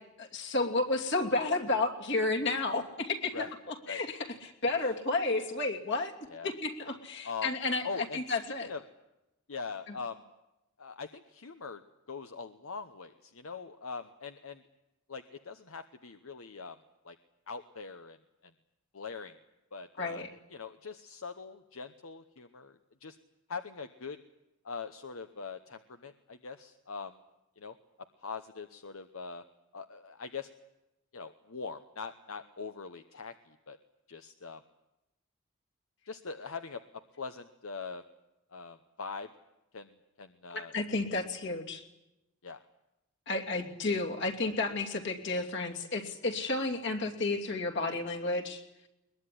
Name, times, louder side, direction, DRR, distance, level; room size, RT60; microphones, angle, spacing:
voice 1, 0.2-3.5 3.9-6.1 6.4-7.8 8.1-8.7 9.9-10.0 20.0-20.3 40.5-41.8 43.3-48.6, left 3 dB, 55° left, 2 dB, 2.8 m, -32 dB
voice 2, 7.8-8.8 9.5-10.2 10.8-11.8 12.1-14.6 15.1-16.8 17.0-17.2 17.5-18.2 18.4-18.5 18.9-19.4 19.7-23.2 23.5-24.2 24.6-27.2 27.6-27.7 28.2-29.4 29.7-30.5 31.1-33.8 34.1-34.6 36.1-36.8 37.2-38.0 38.5-39.3 39.7-40.7 42.4-42.6, left 5 dB, 75° left, 9 dB, 1.0 m, -42 dB
21.5 x 21.5 x 10.0 m, 0.93 s
head